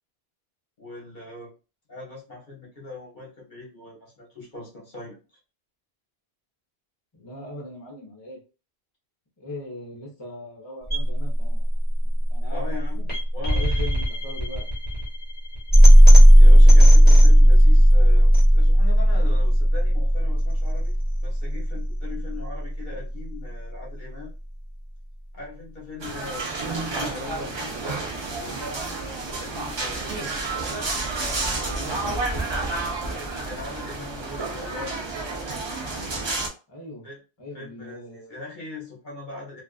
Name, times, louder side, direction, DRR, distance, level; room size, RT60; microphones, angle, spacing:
voice 1, 0.8-1.5 1.9-5.2 12.5-13.0 13.3-13.8 16.3-20.9 21.2-24.3 25.3-26.6 27.0-28.8 29.4-30.0 33.5-35.1 37.0-37.2 37.5-39.6, left 3 dB, 55° left, -3 dB, 0.9 m, -40 dB
voice 2, 7.1-8.4 9.4-11.7 12.0-12.6 12.9-13.1 13.5-14.7 31.7-32.3 32.7-33.6 36.7-37.1 37.4-38.4, left 1 dB, 30° left, -2 dB, 0.8 m, -40 dB
sound 1, 10.9-22.9, equal, 10° left, 1.2 m, -15 dB
sound 2, 26.0-36.5, right 3 dB, 40° right, 0.4 m, -30 dB
2.4 x 2.3 x 2.3 m, 0.32 s
omnidirectional pair, 1.0 m